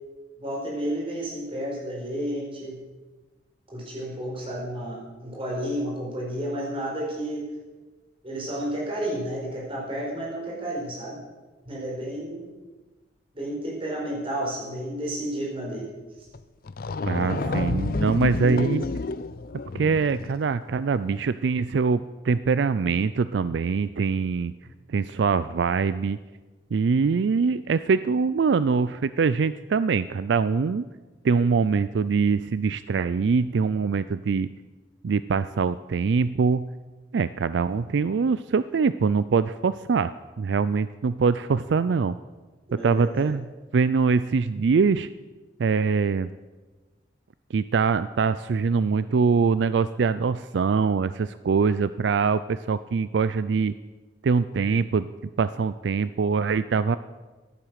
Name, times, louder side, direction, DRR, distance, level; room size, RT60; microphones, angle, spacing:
voice 1, 0.4-2.8 3.7-7.4 8.2-11.2 11.6-12.5 13.3-15.9 17.1-17.7 18.1-18.7 42.7-43.3, right 1 dB, 30° right, -3 dB, 4.9 m, -31 dB
sound 1, 16.3-16.4 16.7-20.4, left 3 dB, 55° left, 0.5 m, -30 dB
voice 2, 17.1-18.8 19.7-24.5 24.9-26.2 26.7-30.9 31.2-34.5 35.0-36.7 37.1-42.2 42.7-43.5 43.7-45.1 45.6-46.3 47.5-53.7 54.2-55.1 55.4-57.0, right 5 dB, 75° right, 15 dB, 0.4 m, -23 dB
15.0 x 10.5 x 6.4 m, 1.3 s
head